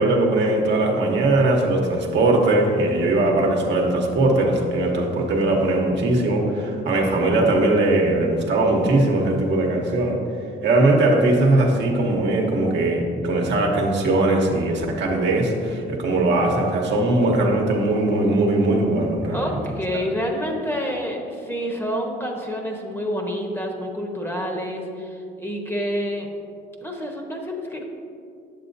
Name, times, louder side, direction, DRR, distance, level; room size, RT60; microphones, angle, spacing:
voice 1, 0.0-10.2 10.6-19.5, right 2 dB, 65° right, 0 dB, 1.0 m, -20 dB
voice 2, 19.3-26.3 26.8-27.8, equal, 10° left, 1 dB, 0.9 m, -28 dB
7.5 x 7.4 x 2.6 m, 2.5 s
cardioid pair, 90°, 20 cm